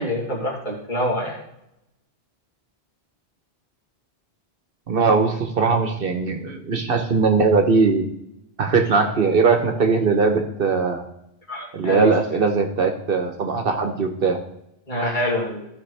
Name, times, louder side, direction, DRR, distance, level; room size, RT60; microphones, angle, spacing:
voice 1, 0.0-1.4 11.5-12.1 14.9-15.7, left 1 dB, 45° left, -3 dB, 2.5 m, -26 dB
voice 2, 4.9-8.0 8.6-11.1 11.7-14.4, right 4 dB, 60° right, 5 dB, 1.1 m, -20 dB
13.5 x 6.1 x 3.3 m, 0.82 s
omnidirectional pair, 1.1 m